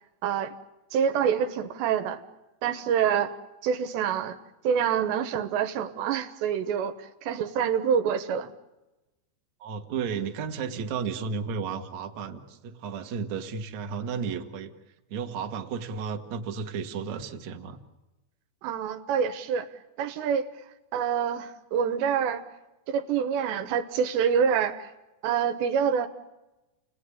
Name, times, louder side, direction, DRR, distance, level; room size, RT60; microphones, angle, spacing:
voice 1, 0.2-0.5 0.9-2.2 2.6-3.3 3.6-4.4 4.6-8.5 18.6-19.7 20.0-20.5 20.9-22.4 22.9-24.9 25.2-26.1, right 7 dB, 80° right, 9 dB, 3.3 m, -26 dB
voice 2, 9.6-17.8, right 6 dB, 50° right, 6 dB, 2.4 m, -33 dB
30.0 x 20.0 x 9.9 m, 1.1 s
omnidirectional pair, 5.1 m